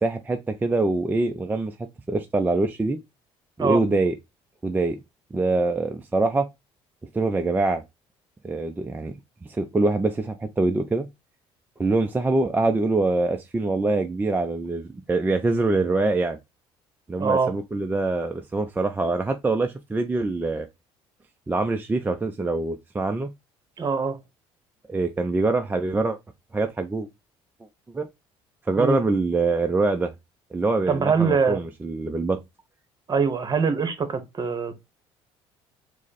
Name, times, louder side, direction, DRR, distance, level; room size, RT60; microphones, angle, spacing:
voice 1, 0.0-1.7 2.1-3.0 3.6-4.2 4.6-5.0 5.3-6.5 7.1-7.8 8.4-9.1 9.4-11.1 11.8-16.4 17.1-20.7 21.5-23.3 24.9-26.2 26.5-27.1 27.9-28.1 28.7-30.1 30.5-32.4, right 3 dB, 15° right, 0.4 m, -24 dB
voice 2, 17.2-17.5 23.8-24.2 28.8-29.0 30.9-31.6 33.1-34.7, right 5 dB, 35° right, 0.9 m, -23 dB
4.9 x 2.1 x 4.0 m
supercardioid pair, 80°, 12 cm